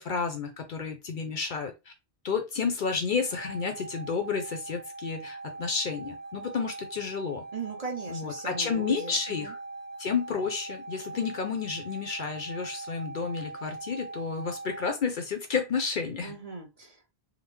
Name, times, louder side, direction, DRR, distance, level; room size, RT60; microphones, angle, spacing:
voice 1, 0.0-1.9 2.2-7.5 8.1-9.6 10.0-16.4, left 5 dB, 60° left, 0.7 m, -31 dB
sound 1, 3.2-14.9, right 3 dB, 80° right, 1.0 m, -42 dB
voice 2, 7.5-9.5 16.2-17.1, right 3 dB, 40° right, 0.8 m, -38 dB
3.6 x 2.0 x 3.1 m
omnidirectional pair, 1.0 m